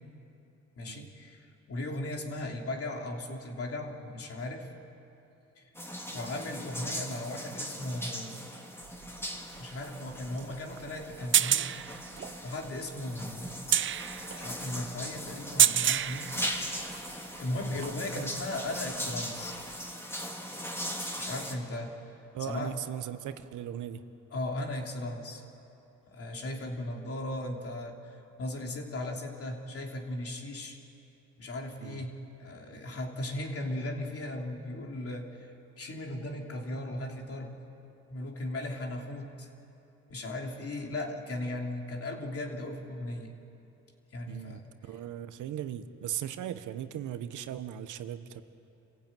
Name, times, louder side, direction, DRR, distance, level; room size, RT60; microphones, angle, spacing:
voice 1, 0.8-4.7 5.6-5.7 6.1-8.6 9.6-11.8 12.4-13.7 14.3-16.4 17.4-19.5 21.2-22.0 22.4-22.8 24.3-25.4 26.1-30.8 31.4-37.6 38.1-39.5 40.1-43.3 44.1-44.6, left 1 dB, 50° left, 2 dB, 3.1 m, -37 dB
sound 1, 5.7-21.5, equal, 10° left, 2.7 m, -39 dB
sound 2, 8.8-17.1 17.6-18.4 19.7-19.8, right 10 dB, 40° right, 0.5 m, -30 dB
voice 2, 22.3-24.0 31.8-32.0 44.3-48.4, right 10 dB, 80° right, 11 dB, 1.1 m, -38 dB
27.5 x 15.5 x 9.2 m, 2.9 s
cardioid pair, 90°, 30 cm